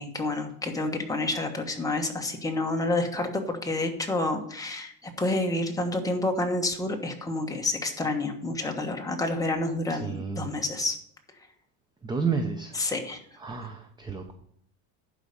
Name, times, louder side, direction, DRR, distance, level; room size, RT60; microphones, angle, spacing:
voice 1, 0.0-11.0 12.7-13.2 13.6-13.7, left 2 dB, 5° left, 2 dB, 1.3 m, -29 dB
voice 2, 10.0-10.5 12.0-12.8 13.4-14.3, right 5 dB, 10° right, 6 dB, 0.6 m, -31 dB
11.0 x 4.9 x 6.7 m, 0.69 s
cardioid pair, 135°, 46 cm